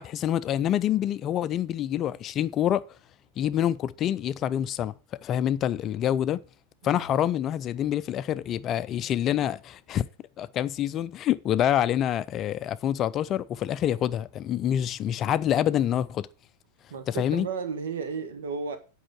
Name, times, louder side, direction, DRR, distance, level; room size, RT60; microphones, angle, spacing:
voice 1, 0.0-3.0 3.4-4.9 5.2-6.4 6.8-10.1 10.4-16.3 17.1-17.5, left 11 dB, 30° left, 0.4 m, -26 dB
voice 2, 16.9-18.8, right 5 dB, 60° right, 1.6 m, -33 dB
8.8 x 5.5 x 7.8 m
figure-of-eight pair, 90°, 0 cm